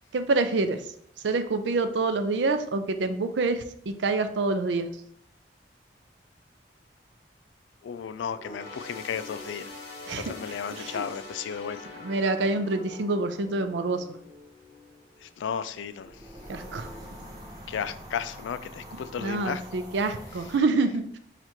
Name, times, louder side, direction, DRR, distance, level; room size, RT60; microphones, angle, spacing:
voice 1, 0.1-0.8 1.2-4.9 10.1-10.3 10.7-11.1 12.0-14.0 16.5-16.9 19.2-21.2, right 3 dB, 80° right, 9 dB, 0.4 m, -27 dB
voice 2, 7.8-9.6 10.2-11.8 15.2-16.1 17.7-19.6, left 7 dB, 90° left, 13 dB, 0.3 m, -34 dB
sound 1, 8.3-16.0 16.4-16.6 17.5-17.6, left 3 dB, 60° left, 1.2 m, -44 dB
sound 2, 16.0-20.6, equal, 20° right, 0.6 m, -44 dB
4.3 x 2.5 x 4.5 m, 0.66 s
head